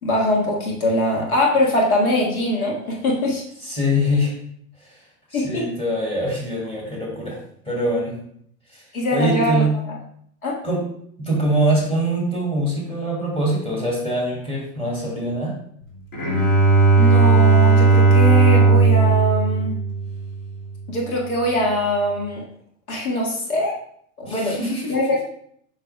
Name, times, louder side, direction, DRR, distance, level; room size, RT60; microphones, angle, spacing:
voice 1, 0.0-3.4 5.3-5.7 8.9-10.0 10.4-10.6 17.0-19.8 20.9-22.4 22.9-23.7 24.2-24.6 24.9-25.3, left 1 dB, 75° left, -2 dB, 1.7 m, -22 dB
voice 2, 3.6-4.3 5.3-7.4 7.7-8.2 8.7-8.8 9.1-9.8 10.6-10.8 11.2-15.6 24.3-24.9, equal, 15° left, -3 dB, 2.5 m, -23 dB
Bowed string instrument, 16.1-20.6, right 4 dB, 50° left, 2.5 m, -16 dB
7.5 x 5.9 x 2.2 m, 0.66 s
hypercardioid pair, 95°, 43 cm